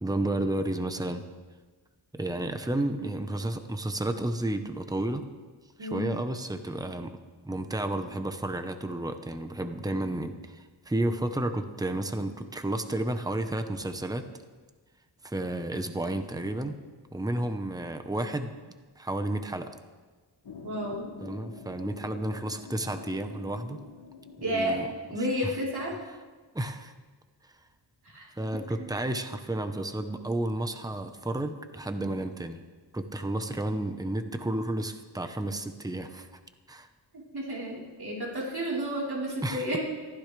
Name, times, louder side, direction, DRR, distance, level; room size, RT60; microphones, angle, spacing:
voice 1, 0.0-1.2 2.1-5.2 5.8-7.2 7.4-14.2 15.2-16.8 17.1-18.5 19.0-19.7 21.2-23.8 24.5-24.9 25.2-25.6 26.5-26.9 27.4-27.5 28.4-32.6 32.9-36.3 36.7-36.9 39.4-39.8, right 1 dB, 10° right, 7 dB, 0.9 m, -32 dB
sound 1, 20.4-25.7, left 6 dB, 60° left, 1.0 m, -47 dB
voice 2, 20.6-21.0 24.4-24.8 25.1-25.9 28.0-28.3 28.8-28.9 37.3-39.8, equal, 60° right, -5 dB, 4.2 m, -31 dB
22.5 x 15.5 x 3.4 m, 1.3 s
wide cardioid pair, 110°, 44 cm